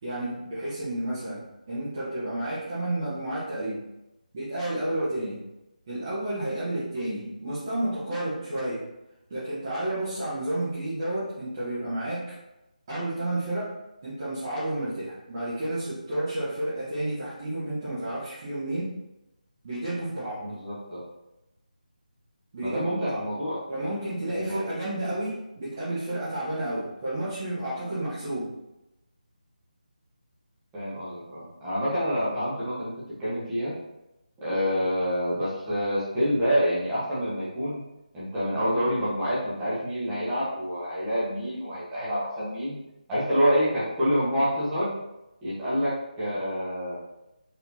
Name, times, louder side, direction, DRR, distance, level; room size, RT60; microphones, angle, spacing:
voice 1, 0.0-3.8 4.3-5.4 5.9-8.8 9.3-12.3 12.9-13.7 14.0-18.9 19.6-20.4 22.5-23.2 23.7-28.5, right 1 dB, 30° right, -12 dB, 1.2 m, -31 dB
voice 2, 20.4-21.0 22.6-23.6 24.2-24.6 30.7-33.7 34.4-37.8 38.1-42.7 43.1-44.9 45.4-47.0, equal, 10° right, -11 dB, 1.2 m, -27 dB
4.8 x 3.4 x 2.9 m, 0.93 s
figure-of-eight pair, 155°, 5 cm